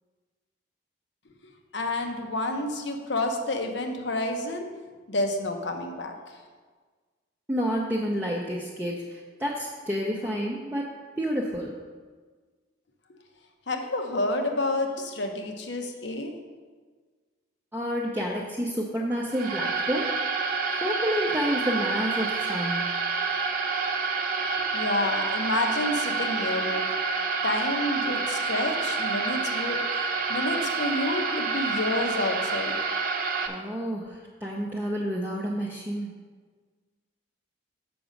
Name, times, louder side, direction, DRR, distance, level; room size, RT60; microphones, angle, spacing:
voice 1, 1.7-4.7 5.1-6.4 13.7-16.3 24.7-26.9 27.4-29.9 30.3-32.8, left 2 dB, 70° left, 4 dB, 0.9 m, -29 dB
voice 2, 7.5-10.9 11.2-11.8 17.7-20.2 20.8-22.9 33.5-36.1, equal, 10° right, -3 dB, 0.6 m, -29 dB
sound 1, 19.3-33.5, right 4 dB, 45° right, 0.7 m, -28 dB
6.9 x 6.0 x 5.2 m, 1.5 s
head